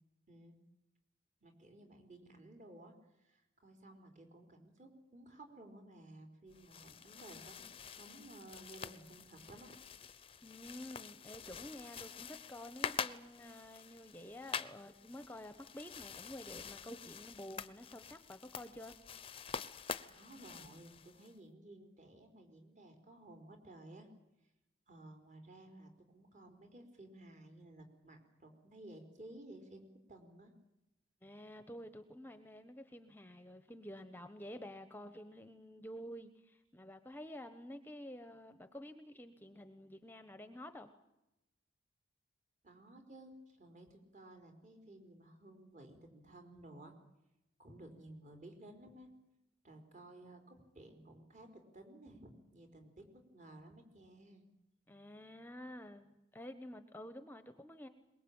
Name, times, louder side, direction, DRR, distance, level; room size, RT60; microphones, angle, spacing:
voice 1, 1.4-9.7 20.0-24.1 24.9-30.5 42.6-46.9 47.6-49.1 49.6-54.4, right 1 dB, 40° right, 4 dB, 4.4 m, -56 dB
sound 1, 6.5-21.3, left 6 dB, 30° left, 0.8 m, -47 dB
voice 2, 10.4-18.9 31.2-40.9 54.9-57.9, left 1 dB, 10° left, 9 dB, 1.0 m, -50 dB
22.5 x 21.0 x 8.9 m, 0.91 s
head